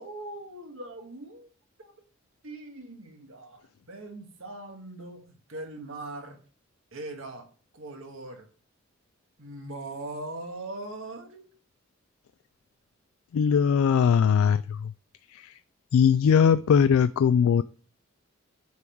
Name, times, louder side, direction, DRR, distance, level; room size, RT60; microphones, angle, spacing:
voice 1, 0.0-1.5 1.8-1.9 2.4-6.4 6.9-7.5 7.7-8.5 9.4-11.4, right 2 dB, 75° right, 1.6 m, -40 dB
voice 2, 13.3-14.9 15.9-17.6, left 7 dB, 85° left, 0.3 m, -20 dB
9.4 x 3.9 x 4.5 m
head